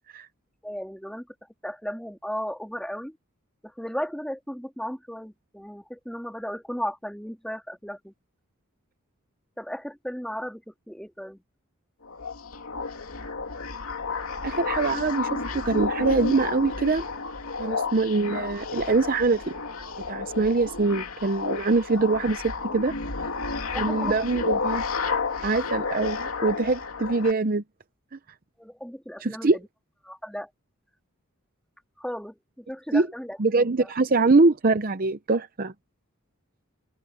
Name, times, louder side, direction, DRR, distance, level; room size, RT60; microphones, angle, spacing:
voice 1, 0.6-1.2 1.6-3.2 3.6-8.1 9.6-11.4 23.7-24.2 28.6-29.6 30.0-30.5 32.0-33.4 33.8-33.9, equal, 5° left, 3.3 m, -35 dB
sound 1, 12.0-27.3, left 4 dB, 75° left, 2.7 m, -31 dB
voice 2, 14.4-17.0 17.6-19.5 20.0-22.9 23.8-24.8 25.4-27.6 29.2-29.6 32.9-33.1 33.4-35.7, right 3 dB, 40° right, 0.7 m, -23 dB
head